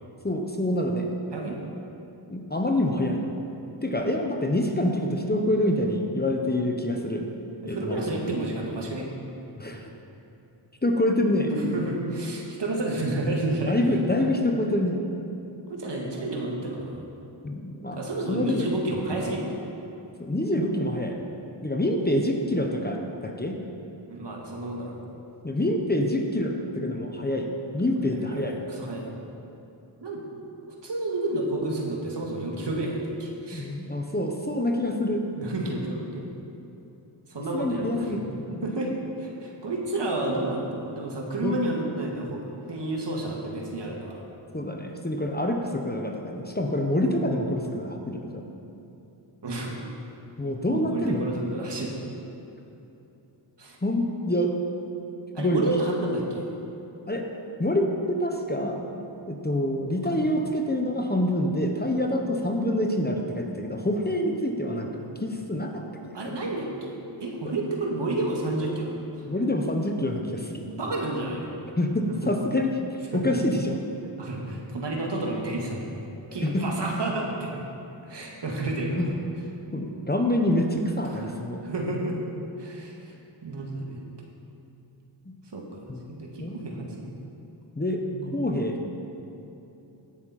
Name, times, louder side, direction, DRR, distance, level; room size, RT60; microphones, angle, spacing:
voice 1, 0.2-1.1 2.3-3.3 3.8-7.3 7.6-8.2 9.6-9.9 10.8-11.5 13.7-15.0 17.4-18.0 18.3-18.6 20.2-21.2 21.6-23.6 25.4-27.5 27.7-28.6 33.5-35.3 37.5-38.6 41.4-41.6 44.5-48.4 50.4-51.2 53.8-54.6 55.4-55.6 57.1-57.3 57.6-58.9 59.3-64.9 65.2-66.4 67.4-67.5 69.2-70.7 71.8-72.8 73.1-73.8 76.4-76.7 79.0-79.1 79.7-81.6 85.9-86.0 86.4-86.6 87.8-88.0 88.3-88.8, left 1 dB, 20° left, 2 dB, 1.2 m, -26 dB
voice 2, 7.6-9.1 11.5-13.8 14.2-14.3 15.7-17.0 17.9-19.6 24.1-25.0 28.3-29.1 30.0-30.2 30.8-33.7 35.3-36.2 37.3-38.2 38.6-38.9 39.2-44.2 49.4-49.8 50.7-51.9 53.6-53.8 55.3-56.5 60.0-60.3 64.9-65.0 66.1-69.0 70.6-71.5 72.1-72.3 73.1-73.2 74.2-76.0 76.3-77.6 78.1-79.0 81.0-81.3 81.6-82.2 82.6-83.0 83.4-84.0 85.5-85.8 86.1-87.1 88.1-88.4, right 2 dB, 55° right, -1 dB, 2.1 m, -30 dB
16.5 x 6.9 x 4.3 m, 2.9 s
cardioid pair, 50°, 49 cm